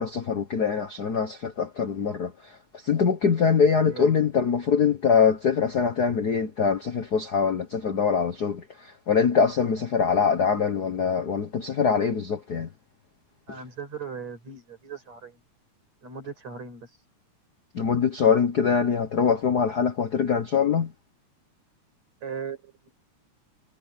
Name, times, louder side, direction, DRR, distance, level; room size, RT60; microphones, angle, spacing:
voice 1, 0.0-12.7 17.7-20.9, left 6 dB, 50° left, 1.2 m, -23 dB
voice 2, 3.9-4.2 13.5-15.4 16.0-16.9 22.2-22.9, right 6 dB, 65° right, 7.4 m, -38 dB
omnidirectional pair, 3.4 m